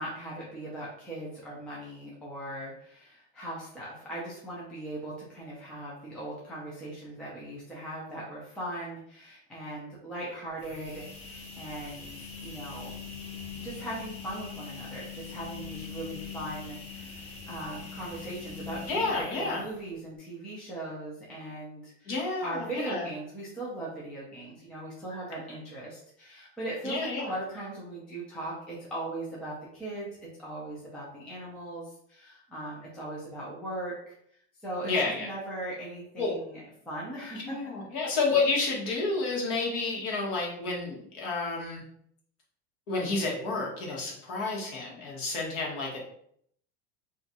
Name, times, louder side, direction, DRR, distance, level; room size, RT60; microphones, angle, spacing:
voice 1, 0.0-13.0 13.6-34.1 34.6-37.6, right 1 dB, 5° left, -5 dB, 0.3 m, -39 dB
sound 1, 10.5-19.9, left 5 dB, 20° left, 0.7 m, -42 dB
voice 2, 18.9-19.6 22.1-23.1 26.8-27.3 34.8-35.3 36.2-36.4 37.3-41.8 42.9-46.0, left 3 dB, 55° left, -2 dB, 1.2 m, -30 dB
2.5 x 2.4 x 4.0 m, 0.67 s
supercardioid pair, 175°, 31 cm